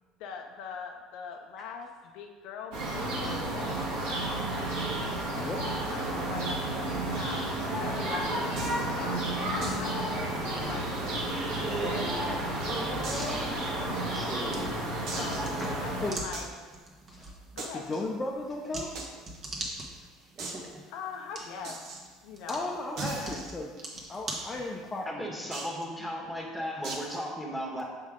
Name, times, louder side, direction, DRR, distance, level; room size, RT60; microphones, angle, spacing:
voice 1, 0.0-1.9 2.1-4.9 5.2-7.5 7.8-14.4 15.1-15.5 15.8-16.5 17.5-18.1 20.9-21.8 22.2-22.8 23.1-23.4, left 6 dB, 70° left, 3 dB, 0.6 m, -43 dB
sound 1, 2.7-16.1, right 1 dB, 80° right, 1.8 m, -31 dB
voice 2, 5.2-5.6 16.0-16.2 17.1-17.3 17.7-18.9 22.5-23.7 24.1-25.3, left 2 dB, 25° left, -2 dB, 0.7 m, -35 dB
sound 2, 8.6-8.8 9.6-9.9 10.2-10.3 10.6-10.7 11.4-12.2 13.0-13.4 14.0-14.1 15.1-15.5 16.3-16.5 17.6-18.0 18.9-19.1 19.3-19.4 19.7-19.8 20.4-20.6 21.6-22.0 23.0-24.1 25.5-25.8 26.8-27.2, right 3 dB, 60° right, 1.2 m, -39 dB
voice 3, 13.0-13.8 14.1-14.7 25.0-27.8, equal, ahead, -2 dB, 1.5 m, -36 dB
sound 3, 13.1-25.0, right 2 dB, 40° right, 1.4 m, -44 dB
6.5 x 4.9 x 3.6 m, 1.5 s
supercardioid pair, 105°, 0 cm